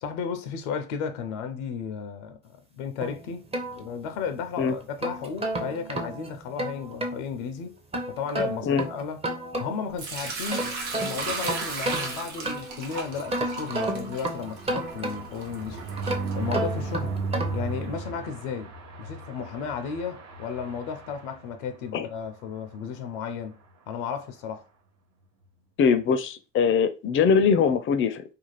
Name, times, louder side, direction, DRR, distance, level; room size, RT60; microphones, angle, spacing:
voice 1, 0.0-3.5 3.7-7.8 8.1-9.2 9.6-15.8 16.3-17.2 17.5-18.7 19.0-23.6 23.9-24.6, left 6 dB, 85° left, 0.5 m, -34 dB
sound 1, 3.0-4.4 4.8-7.2 7.9-10.0 10.3-12.8 13.3-15.5 16.0-17.7, right 1 dB, 20° right, 0.7 m, -32 dB
Sink (filling or washing) / Liquid, 10.0-16.9, right 3 dB, 85° right, 0.7 m, -36 dB
sound 2, 13.1-21.9 22.3-22.5 22.7-22.8 23.1-23.4, right 3 dB, 50° right, 0.8 m, -36 dB
voice 2, 25.8-28.2, left 6 dB, 35° left, 0.4 m, -22 dB
2.5 x 2.3 x 3.0 m
hypercardioid pair, 60°, 34 cm